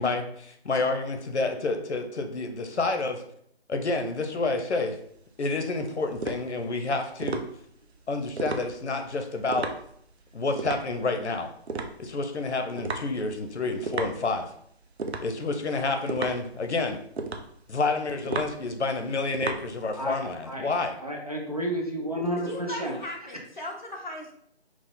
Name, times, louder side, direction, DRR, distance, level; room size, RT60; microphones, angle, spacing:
voice 1, 0.0-3.2 3.7-5.0 5.4-7.4 8.1-9.7 10.3-11.5 12.0-14.5 15.2-17.0 17.7-20.9, left 3 dB, 85° left, 6 dB, 0.8 m, -29 dB
sound 1, 4.7-20.3, right 3 dB, 75° right, 0.7 m, -36 dB
voice 2, 21.0-23.0, right 1 dB, 35° right, -1 dB, 0.6 m, -31 dB
voice 3, 22.5-24.3, left 1 dB, 45° left, -1 dB, 0.9 m, -37 dB
4.9 x 2.1 x 3.7 m, 0.67 s
figure-of-eight pair, 180°, 33 cm